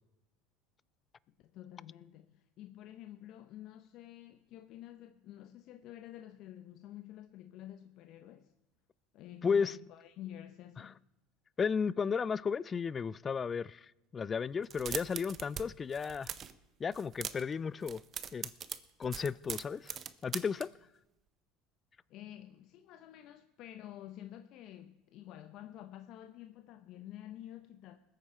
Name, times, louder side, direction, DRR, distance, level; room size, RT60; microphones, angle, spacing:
voice 1, 1.4-8.5 9.1-11.0 22.1-28.0, left 12 dB, 55° left, 0.8 m, -50 dB
voice 2, 9.4-9.7 11.6-13.9 14.1-16.3 16.8-18.0 18.3-18.5 19.0-19.9 20.2-20.7, left 6 dB, 30° left, 0.4 m, -33 dB
sound 1, 14.6-15.6 15.9-16.5 16.9-17.5 17.8-20.6, right 8 dB, 40° right, 0.9 m, -40 dB
20.5 x 8.9 x 4.4 m
hypercardioid pair, 80°, 0 cm